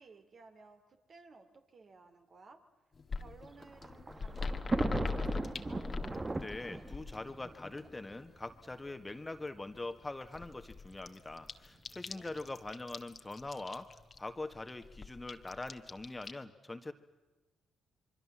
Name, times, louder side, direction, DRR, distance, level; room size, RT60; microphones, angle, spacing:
voice 1, 0.0-2.6 3.1-5.9 12.1-12.4, right 3 dB, 50° right, 5 dB, 2.9 m, -58 dB
sound 1, 3.0-8.1 8.5-9.1 9.4-9.5 9.7-9.8 10.0-16.3, left 4 dB, 40° left, 1.5 m, -42 dB
Thunder, 3.3-8.6 9.4-9.5 9.7-9.8 10.9-11.2, right 2 dB, 25° right, 1.1 m, -38 dB
voice 2, 6.4-13.9 14.2-16.9, left 2 dB, 20° left, 9 dB, 1.6 m, -43 dB
25.5 x 23.5 x 7.4 m, 1.2 s
hypercardioid pair, 50°, 0 cm